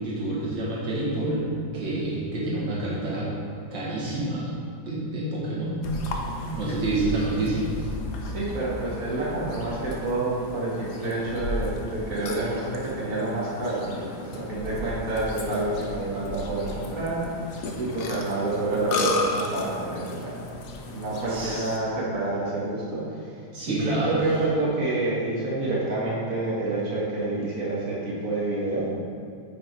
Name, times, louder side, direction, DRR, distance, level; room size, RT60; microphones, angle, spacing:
voice 1, 0.0-1.5 1.7-3.3 3.7-4.5 4.9-5.9 6.5-7.9 21.3-21.7 23.5-24.2, right 2 dB, 80° right, -6 dB, 2.3 m, -28 dB
Burping eructation, 5.8-21.8, left 2 dB, 65° left, 1.4 m, -34 dB
voice 2, 8.2-20.4 20.9-28.9, right 2 dB, 45° right, -7 dB, 2.4 m, -28 dB
9.1 x 6.9 x 4.5 m, 2.3 s
omnidirectional pair, 2.0 m